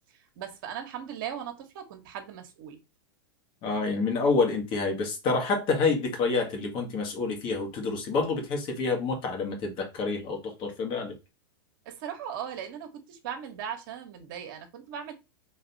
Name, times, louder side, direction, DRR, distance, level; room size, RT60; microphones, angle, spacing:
voice 1, 0.4-2.8 11.8-15.1, right 9 dB, 55° right, 1.4 m, -38 dB
voice 2, 3.6-11.1, left 4 dB, 40° left, 1.7 m, -28 dB
4.0 x 3.3 x 4.1 m
hypercardioid pair, 105°, 13 cm